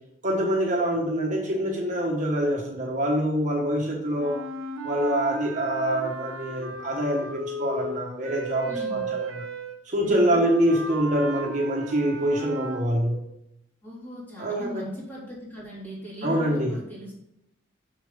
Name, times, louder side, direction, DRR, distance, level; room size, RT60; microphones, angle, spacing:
voice 1, 0.2-4.4 4.8-9.3 9.8-13.2 14.4-14.9 16.2-16.8, right 1 dB, 40° right, -1 dB, 1.4 m, -25 dB
sound 1, 4.2-12.9, right 2 dB, 85° right, 0.9 m, -34 dB
voice 2, 8.7-9.1 10.0-10.4 13.8-17.2, left 1 dB, 10° left, -7 dB, 3.3 m, -38 dB
7.0 x 6.6 x 3.7 m, 0.80 s
head